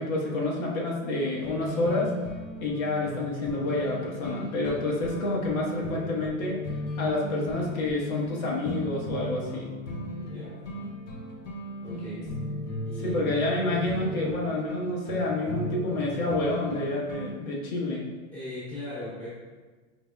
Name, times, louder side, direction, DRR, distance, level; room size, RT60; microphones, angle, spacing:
voice 1, 0.0-2.1 2.6-6.5 7.0-9.7 13.0-18.1, left 2 dB, 85° left, -3 dB, 1.2 m, -28 dB
sound 1, 1.1-17.3, left 1 dB, 35° left, 0.4 m, -36 dB
voice 2, 10.1-10.6 11.8-12.3 12.8-13.4 18.3-19.3, left 1 dB, 5° left, -11 dB, 1.0 m, -39 dB
4.7 x 3.4 x 2.2 m, 1.4 s
supercardioid pair, 170°, 40 cm